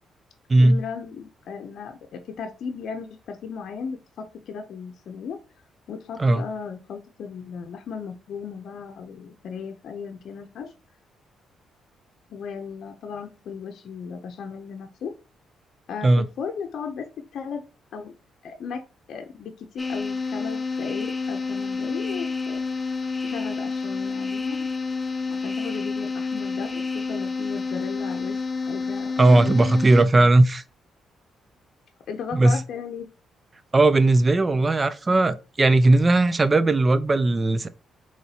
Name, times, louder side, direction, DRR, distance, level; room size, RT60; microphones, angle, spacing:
voice 1, 0.6-5.4 5.9-10.7 12.3-15.1 15.9-17.6 17.9-18.1 18.4-18.8 19.1-22.6 23.2-24.7 25.3-29.6 30.1-30.4 32.1-33.1, left 6 dB, 65° left, 0.6 m, -36 dB
sound 1, 19.8-30.0, left 4 dB, 20° left, 0.6 m, -29 dB
voice 2, 29.2-30.6 32.3-32.6 33.7-37.7, right 2 dB, 25° right, 0.4 m, -18 dB
4.1 x 3.1 x 4.1 m
cardioid pair, 90°, 0 cm